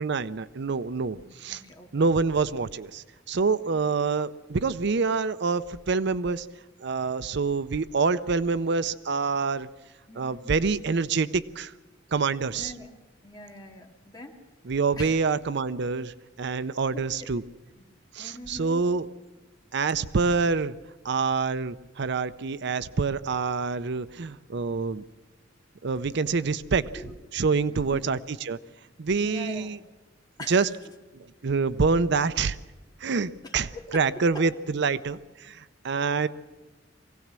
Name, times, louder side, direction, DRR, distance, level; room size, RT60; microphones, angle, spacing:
voice 1, 0.0-1.6 1.9-6.5 6.8-9.7 10.2-11.7 12.1-12.7 14.6-17.4 18.1-19.1 19.7-20.7 21.0-25.0 25.8-26.9 27.3-28.6 29.0-29.8 30.5-30.7 31.1-32.6 33.0-36.3, right 4 dB, 65° right, 14 dB, 0.6 m, -26 dB
voice 2, 1.5-1.9 3.6-3.8 10.1-10.7 12.5-12.9 13.2-14.4 15.0-15.2 16.5-16.7 16.9-17.3 17.8-17.9 18.2-18.8 26.9-27.2 27.7-28.0 29.2-29.8 30.4-30.8 33.4-34.4, left 1 dB, 20° left, 1 dB, 2.3 m, -43 dB
23.0 x 17.0 x 7.5 m, 1.2 s
head